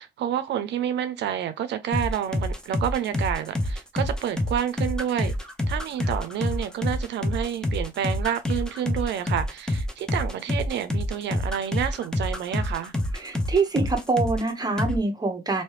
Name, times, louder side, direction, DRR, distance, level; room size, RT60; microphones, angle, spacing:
voice 1, 0.0-5.3 5.7-12.9, right 10 dB, 80° right, 0.5 m, -29 dB
sound 1, 1.9-14.5 14.8-15.0, left 1 dB, 5° left, 0.6 m, -27 dB
voice 2, 13.1-15.6, right 3 dB, 20° right, 0.9 m, -25 dB
3.0 x 2.7 x 3.2 m
cardioid pair, 110°, 18 cm